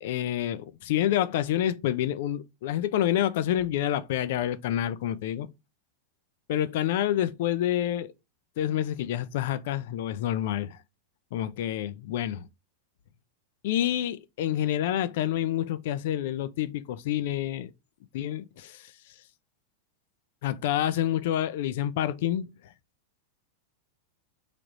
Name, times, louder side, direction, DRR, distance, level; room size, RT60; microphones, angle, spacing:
voice 1, 0.0-5.5 6.5-8.1 8.6-10.8 11.3-12.5 13.6-17.7 18.1-18.9 20.4-22.5, left 11 dB, 55° left, 0.4 m, -28 dB
3.4 x 2.9 x 3.8 m
figure-of-eight pair, 90°, 0 cm